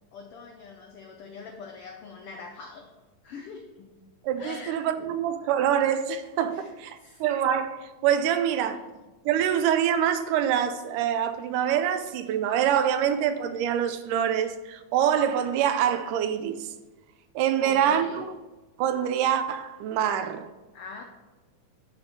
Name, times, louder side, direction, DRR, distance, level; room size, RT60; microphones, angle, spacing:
voice 1, 0.1-2.9 3.2-4.0 4.4-4.8 6.5-7.2 8.7-8.9 17.6-18.3 20.7-21.0, left 5 dB, 90° left, 1.2 m, -43 dB
voice 2, 4.2-8.8 9.3-16.7 17.4-18.3 18.8-20.5, right 9 dB, 85° right, 2.2 m, -25 dB
9.7 x 4.3 x 6.8 m
omnidirectional pair, 3.6 m